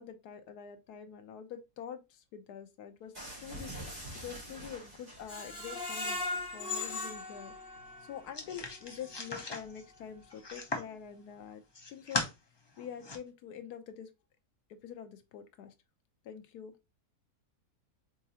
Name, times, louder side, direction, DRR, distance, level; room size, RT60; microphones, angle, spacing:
voice 1, 0.0-3.1 3.4-6.2 6.5-7.5 8.0-11.6 11.9-12.2 12.8-14.1 14.7-15.7 16.2-16.7, left 8 dB, 85° left, 1.3 m, -46 dB
sound 1, 3.1-5.6, right 1 dB, 25° right, 2.3 m, -45 dB
Screech, 5.3-8.3 8.7-8.8 9.2-9.3, left 3 dB, 20° left, 2.0 m, -38 dB
sound 2, 8.3-11.0 11.5-12.3 12.8-13.2, left 3 dB, 45° left, 0.3 m, -38 dB
4.4 x 3.7 x 2.8 m
omnidirectional pair, 1.6 m